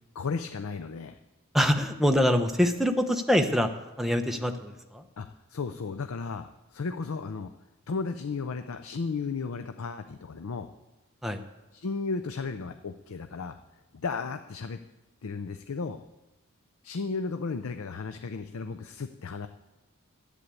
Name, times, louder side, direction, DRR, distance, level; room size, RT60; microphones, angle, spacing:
voice 1, 0.1-1.2 5.2-7.5 7.9-10.7 11.7-13.6 13.9-14.8 15.2-16.0 16.8-19.5, left 4 dB, 70° left, 8 dB, 0.5 m, -34 dB
voice 2, 1.5-3.7 4.0-5.0 11.2-11.4, equal, ahead, 5 dB, 0.7 m, -24 dB
11.0 x 8.4 x 8.3 m, 1.1 s
head